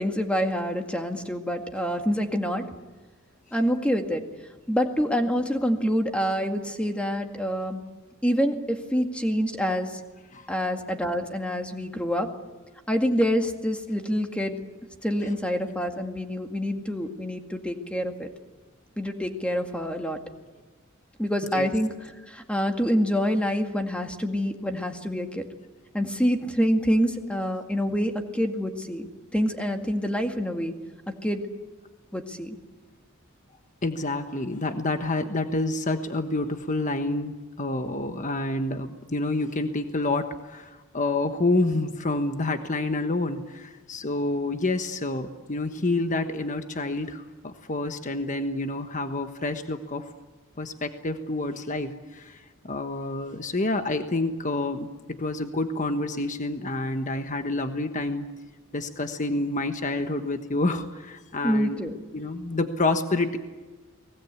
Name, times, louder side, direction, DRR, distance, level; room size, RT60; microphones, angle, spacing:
voice 1, 0.0-2.7 3.5-4.2 4.7-7.9 8.2-10.0 10.5-12.3 12.9-14.6 15.0-18.3 19.0-20.2 21.2-21.9 22.3-25.4 25.9-29.1 29.3-30.7 31.1-31.5 32.1-32.6 61.4-61.9, equal, 5° left, 4 dB, 2.1 m, -26 dB
voice 2, 33.8-50.0 50.6-58.3 58.7-61.8 62.1-63.4, left 2 dB, 40° left, 7 dB, 1.3 m, -28 dB
30.0 x 20.5 x 8.5 m, 1.3 s
head